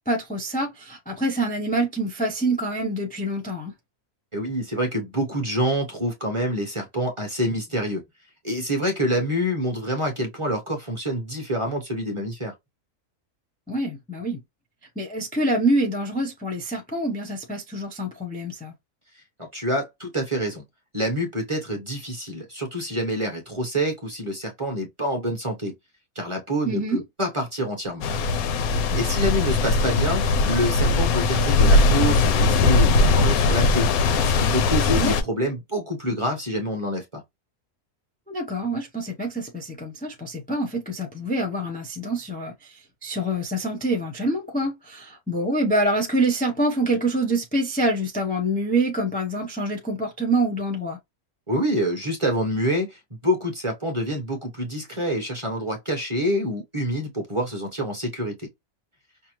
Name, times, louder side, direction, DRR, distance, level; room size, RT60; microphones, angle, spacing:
voice 1, 0.1-3.7 13.7-14.4 15.0-18.7 26.6-27.0 34.9-35.1 38.3-42.5 43.0-51.0, right 1 dB, 10° left, 0.5 m, -26 dB
voice 2, 4.3-8.0 8.4-12.5 19.4-20.6 20.9-25.7 26.1-28.0 28.9-33.9 34.4-37.2 51.5-58.5, equal, 25° right, 0.8 m, -27 dB
sound 1, 28.0-35.2, left 3 dB, 75° left, 1.1 m, -20 dB
5.5 x 2.0 x 3.0 m
omnidirectional pair, 1.6 m